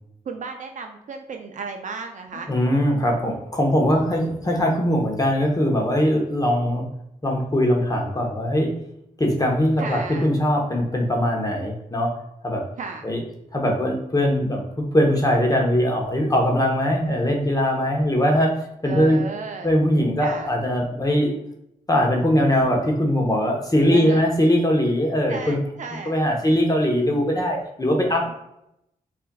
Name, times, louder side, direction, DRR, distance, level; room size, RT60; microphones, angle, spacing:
voice 1, 0.3-2.5 9.8-10.3 12.8-13.2 18.8-19.7 20.2-20.5 23.9-24.2 25.3-26.1, right 5 dB, 55° right, 4 dB, 0.4 m, -34 dB
voice 2, 2.5-6.9 7.2-8.7 9.2-12.1 12.4-12.6 13.0-13.2 13.5-18.5 18.8-19.2 19.6-21.4 21.9-25.6 26.0-28.3, equal, 25° left, 0 dB, 1.0 m, -21 dB
5.4 x 2.6 x 2.3 m, 0.80 s
supercardioid pair, 40°, 15 cm